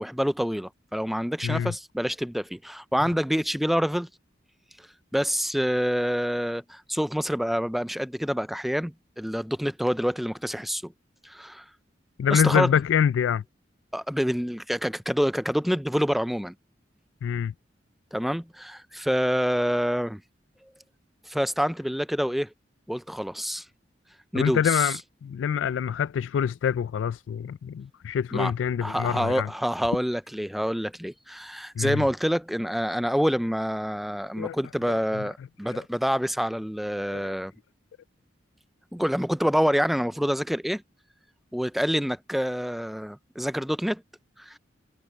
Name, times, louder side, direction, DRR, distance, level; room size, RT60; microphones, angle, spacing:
voice 1, 0.0-4.1 4.8-4.9 5.1-10.9 11.2-11.7 12.3-12.7 13.9-16.5 18.1-20.2 21.3-22.5 22.9-23.7 24.3-25.0 28.3-28.5 28.8-37.5 38.9-40.8 41.5-44.0 44.4-44.6, equal, ahead, 0.3 m, -27 dB
voice 2, 1.4-1.7 12.2-13.4 17.2-17.5 24.3-29.5 31.8-32.0 34.4-34.6 37.1-37.3, left 8 dB, 85° left, 0.3 m, -25 dB
head